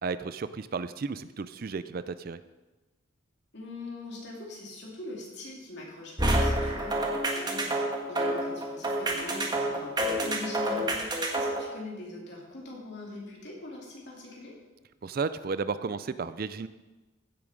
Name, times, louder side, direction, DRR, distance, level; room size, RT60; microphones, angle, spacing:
voice 1, 0.0-2.4 15.0-16.7, right 4 dB, 45° right, 14 dB, 0.4 m, -33 dB
voice 2, 3.5-14.5, left 2 dB, 55° left, -2 dB, 3.0 m, -42 dB
sound 1, 6.2-11.6, right 1 dB, 20° right, 1.4 m, -28 dB
15.5 x 7.1 x 5.1 m, 1.2 s
head